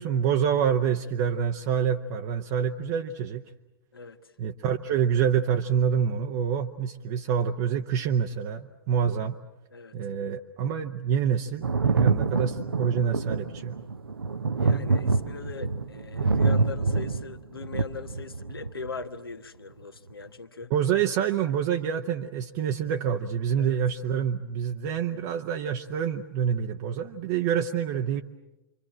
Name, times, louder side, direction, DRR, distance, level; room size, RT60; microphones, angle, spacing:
voice 1, 0.0-3.4 4.4-9.4 9.9-13.8 20.7-28.2, right 8 dB, 45° right, 3 dB, 1.0 m, -27 dB
voice 2, 3.9-4.3 9.7-9.9 14.6-20.7 23.6-23.8 27.5-27.6, left 5 dB, 75° left, 8 dB, 1.3 m, -40 dB
Thunder, 11.6-19.0 20.1-20.2, right 4 dB, 75° right, 0.9 m, -26 dB
28.5 x 24.5 x 7.5 m, 0.99 s
figure-of-eight pair, 95°, 12 cm